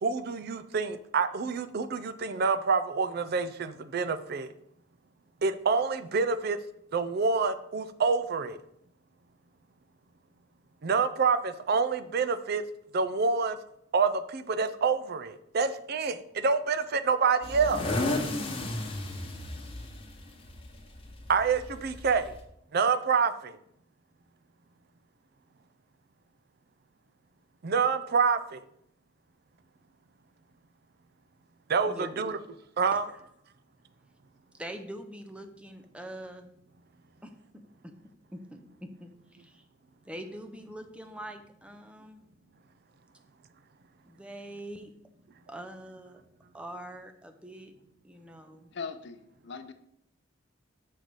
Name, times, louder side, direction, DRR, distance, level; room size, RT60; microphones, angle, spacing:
voice 1, 0.0-4.5 5.4-6.6 6.9-8.6 10.8-12.6 12.9-13.6 13.9-17.9 21.3-22.3 22.7-23.5 27.6-28.6 31.7-32.4 32.8-33.1, right 5 dB, 55° right, 11 dB, 0.5 m, -27 dB
sound 1, 17.4-22.4, left 2 dB, 30° left, 1.0 m, -34 dB
voice 2, 32.9-33.2 34.6-36.5 37.2-37.9 38.3-39.6 40.0-42.2 44.1-44.9 45.5-46.2 46.5-47.7 48.0-48.7, right 1 dB, 5° right, 5 dB, 0.6 m, -44 dB
voice 3, 48.7-49.7, left 5 dB, 65° left, 10 dB, 0.6 m, -40 dB
6.4 x 4.1 x 6.1 m, 0.74 s
head